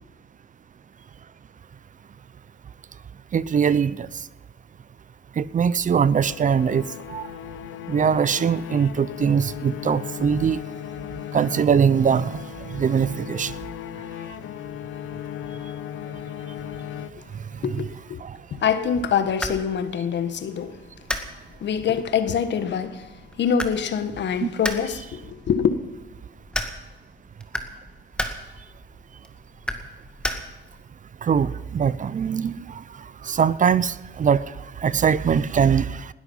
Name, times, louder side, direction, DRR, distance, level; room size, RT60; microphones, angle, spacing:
voice 1, 3.3-4.1 5.4-7.2 7.9-10.6 11.3-12.4 12.7-13.5 17.7-17.8 18.2-18.3 24.4-24.5 31.2-32.8 33.2-34.4 34.8-36.1, right 7 dB, 40° right, 0.6 m, -22 dB
sound 1, 6.2-17.7, left 11 dB, 85° left, 0.8 m, -37 dB
voice 2, 17.6-18.2 18.6-20.8 21.6-25.7, left 7 dB, 65° left, 1.5 m, -25 dB
sound 2, 18.8-30.9, left 1 dB, 5° left, 2.0 m, -35 dB
20.0 x 13.0 x 5.6 m
cardioid pair, 90°, 20 cm